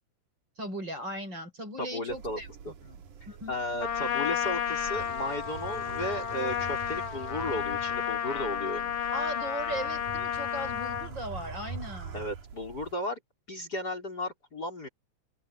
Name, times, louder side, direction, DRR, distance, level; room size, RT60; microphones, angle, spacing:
voice 1, 0.6-2.5 2.8-3.0 3.3-3.6 9.1-12.2, right 1 dB, 35° right, 7.4 m, -38 dB
voice 2, 1.8-2.7 3.5-9.0 12.1-13.2 13.5-14.9, left 1 dB, 30° left, 5.3 m, -35 dB
sound 1, 2.1-12.9, right 6 dB, 80° right, 3.6 m, -44 dB
Trumpet, 3.8-11.1, left 9 dB, 90° left, 3.5 m, -32 dB
open air
omnidirectional pair, 3.5 m